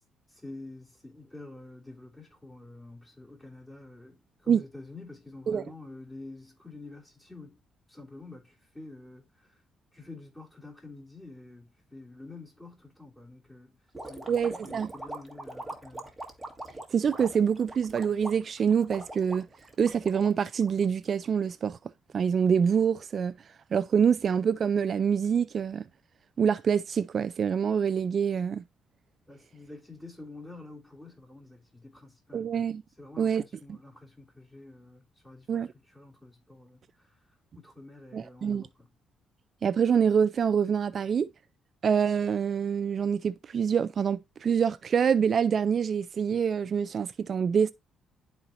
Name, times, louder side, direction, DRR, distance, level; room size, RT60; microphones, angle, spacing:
voice 1, 0.3-7.6 7.9-9.2 9.9-13.8 14.1-16.1 29.3-32.6 33.0-36.8 37.5-38.9, left 2 dB, 10° left, 3.4 m, -48 dB
sound 1, 13.9-21.3, right 1 dB, 5° right, 1.6 m, -42 dB
voice 2, 14.3-14.9 16.9-19.5 19.8-21.8 22.1-23.4 23.7-25.9 26.4-28.6 32.3-32.8 33.2-33.4 33.7-33.8 35.5-35.7 38.1-38.6 39.6-41.3 41.8-47.7, right 7 dB, 50° right, 0.3 m, -26 dB
11.0 x 4.4 x 2.6 m
cardioid pair, 90°, 0 cm